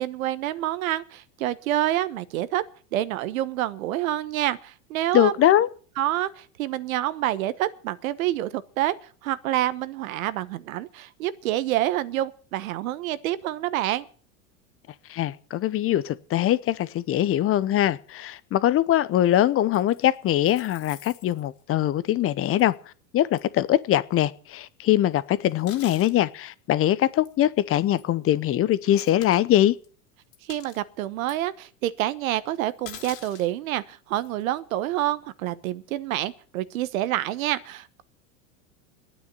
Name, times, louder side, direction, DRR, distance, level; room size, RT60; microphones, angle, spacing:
voice 1, 0.0-2.6 2.9-5.4 6.0-8.9 9.2-14.1 30.5-38.0, right 14 dB, 75° right, 1.2 m, -27 dB
voice 2, 5.1-5.7 15.1-22.7 23.1-29.8, left 12 dB, 35° left, 0.8 m, -22 dB
sound 1, 19.7-21.6 22.6-22.8 23.4-23.5 25.4-26.2 27.3-27.4 28.0-28.1 28.9-29.4 29.8-29.9 30.3-30.8 31.3-31.4 32.9-33.5 34.2-34.4, left 11 dB, 75° left, 2.8 m, -45 dB
11.0 x 9.4 x 9.7 m
supercardioid pair, 110°, 41 cm